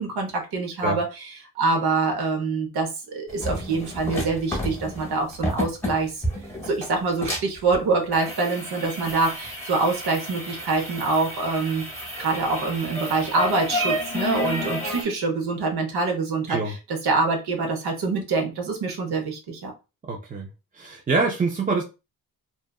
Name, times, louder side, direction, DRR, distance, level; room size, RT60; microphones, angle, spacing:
voice 1, 0.0-6.2 6.6-11.9 12.2-19.7, right 3 dB, 80° right, 0.9 m, -25 dB
sound 1, 3.3-15.0, equal, 5° left, 0.8 m, -31 dB
voice 2, 20.1-20.5 20.7-21.8, right 3 dB, 25° right, 0.3 m, -25 dB
2.7 x 2.3 x 2.3 m
wide cardioid pair, 145°, 38 cm